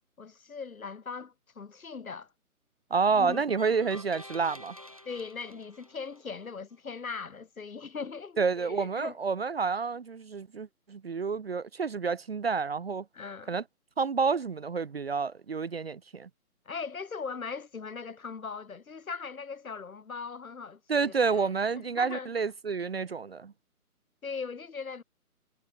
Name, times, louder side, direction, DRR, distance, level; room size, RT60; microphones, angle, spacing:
voice 1, 0.2-2.3 3.2-3.4 5.0-9.2 13.1-13.6 16.7-21.5 21.8-22.3 24.2-25.0, left 5 dB, 65° left, 4.5 m, -39 dB
voice 2, 2.9-4.8 8.4-13.0 13.5-13.6 14.0-16.3 20.9-23.5, right 5 dB, 40° right, 1.1 m, -29 dB
sound 1, 3.3-6.5, left 1 dB, 25° right, 0.6 m, -48 dB
hypercardioid pair, 175°, 45 cm